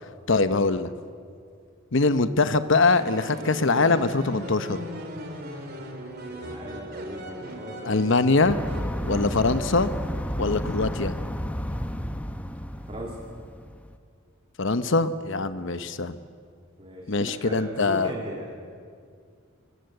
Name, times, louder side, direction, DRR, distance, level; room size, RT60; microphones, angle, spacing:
voice 1, 0.3-0.9 1.9-4.8 7.8-8.6 9.1-9.9 10.4-11.1 14.6-16.2 17.1-18.1, left 3 dB, 65° left, 11 dB, 1.0 m, -23 dB
sound 1, 2.9-9.6, equal, 50° right, 3.7 m, -38 dB
voice 2, 6.3-8.0 8.9-9.3 10.4-10.6 12.9-13.2 15.4-15.6 16.8-18.5, equal, 30° right, -2 dB, 2.9 m, -39 dB
sound 2, 8.5-13.9, equal, 5° left, 1.0 m, -32 dB
26.0 x 21.5 x 7.9 m, 2.2 s
head